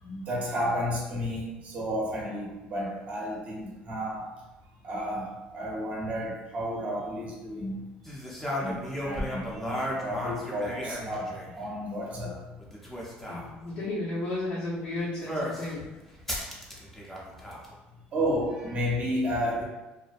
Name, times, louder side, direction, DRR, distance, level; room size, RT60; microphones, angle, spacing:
voice 1, 0.0-4.2 4.8-7.8 8.6-12.4 18.1-19.6, equal, 40° right, -3 dB, 0.7 m, -32 dB
sound 1, 8.0-11.6 12.6-13.4 15.3-15.7 16.3-17.7, equal, 10° left, 0.5 m, -34 dB
voice 2, 13.2-15.9, left 2 dB, 55° left, -9 dB, 0.7 m, -33 dB
2.5 x 2.1 x 2.4 m, 1.1 s
cardioid pair, 115°, 4 cm